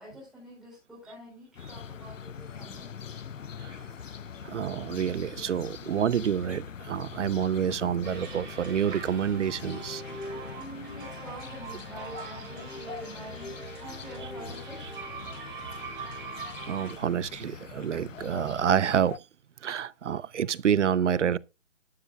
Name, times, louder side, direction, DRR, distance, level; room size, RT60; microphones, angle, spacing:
voice 1, 0.0-2.9 10.6-14.9, right 1 dB, ahead, 4.6 m, -46 dB
sound 1, 1.6-19.2, left 7 dB, 90° left, 0.7 m, -43 dB
voice 2, 4.4-10.0 16.0-16.1 16.7-19.2 19.6-21.4, right 8 dB, 70° right, 0.8 m, -28 dB
sound 2, 8.0-16.9, right 4 dB, 40° right, 6.2 m, -42 dB
13.0 x 11.5 x 2.4 m
hypercardioid pair, 145°, 37 cm